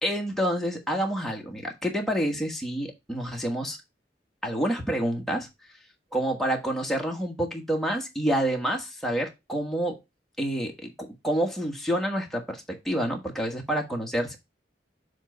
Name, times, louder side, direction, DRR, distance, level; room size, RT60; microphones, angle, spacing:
voice 1, 0.0-3.8 4.4-5.5 6.1-10.0 10.4-14.4, right 1 dB, ahead, 1.3 m, -28 dB
7.2 x 3.1 x 5.1 m
head